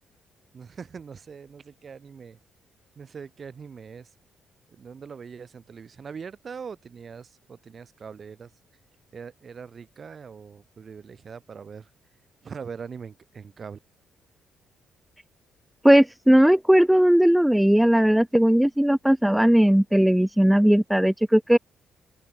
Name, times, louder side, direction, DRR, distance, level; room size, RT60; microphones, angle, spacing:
voice 1, 0.5-2.4 2.9-4.1 4.7-8.5 9.1-11.9 12.4-13.8, right 6 dB, 45° right, 2.9 m, -41 dB
voice 2, 15.8-21.6, equal, 5° right, 0.7 m, -18 dB
open air
cardioid pair, 90°, 0 cm